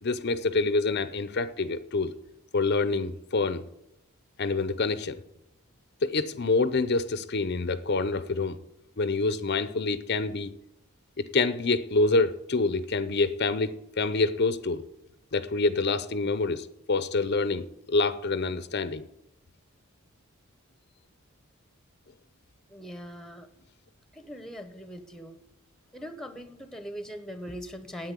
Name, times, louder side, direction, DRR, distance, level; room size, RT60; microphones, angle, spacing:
voice 1, 0.0-2.1 2.5-3.6 4.4-5.2 6.0-8.6 9.0-10.5 11.2-14.8 15.3-19.0, left 3 dB, 50° left, 14 dB, 0.6 m, -27 dB
voice 2, 22.7-23.5 24.1-25.4 25.9-28.1, equal, ahead, 10 dB, 1.0 m, -40 dB
9.6 x 8.8 x 8.3 m, 0.81 s
head